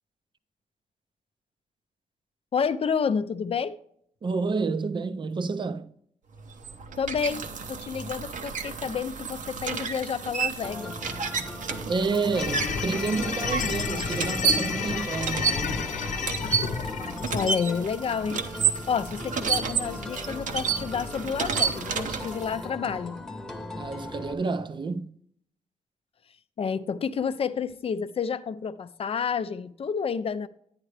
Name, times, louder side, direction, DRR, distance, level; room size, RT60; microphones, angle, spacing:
voice 1, 2.5-3.8 7.0-11.0 17.3-23.2 26.6-30.5, left 6 dB, 45° left, 0.4 m, -30 dB
voice 2, 4.2-5.9 11.9-15.9 23.8-25.1, right 4 dB, 35° right, 0.5 m, -29 dB
sound 1, 6.4-22.6, right 6 dB, 70° right, 0.7 m, -31 dB
sound 2, 10.6-24.3, left 1 dB, 5° left, 0.9 m, -39 dB
sound 3, 12.4-17.6, left 6 dB, 70° left, 0.8 m, -31 dB
9.9 x 9.6 x 3.3 m
wide cardioid pair, 145°, 13 cm